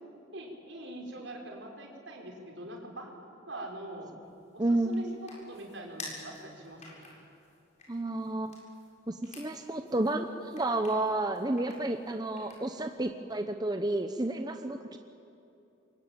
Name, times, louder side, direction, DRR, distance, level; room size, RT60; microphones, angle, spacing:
voice 1, 0.3-3.1 3.5-4.1 4.5-7.1, right 1 dB, 75° right, 1 dB, 5.1 m, -43 dB
sound 1, 4.2-12.9, left 3 dB, 35° left, 7.3 m, -51 dB
voice 2, 4.6-5.0 7.9-8.6 9.1-15.0, right 2 dB, 20° right, 6 dB, 0.9 m, -31 dB
27.5 x 23.5 x 9.0 m, 2.7 s
head